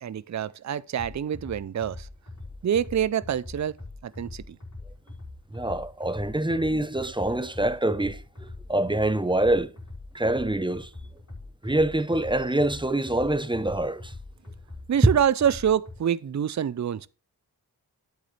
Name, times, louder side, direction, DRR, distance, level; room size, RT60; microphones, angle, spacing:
voice 1, 0.0-2.1 2.6-3.7 4.0-4.6 14.9-17.1, right 9 dB, 45° right, 0.5 m, -26 dB
sound 1, 1.0-16.0, left 2 dB, 45° left, 3.6 m, -42 dB
voice 2, 5.5-9.7 10.1-10.9 11.6-14.1 15.0-15.1, right 1 dB, 10° right, 0.7 m, -25 dB
9.6 x 8.0 x 3.2 m
wide cardioid pair, 70°, 39 cm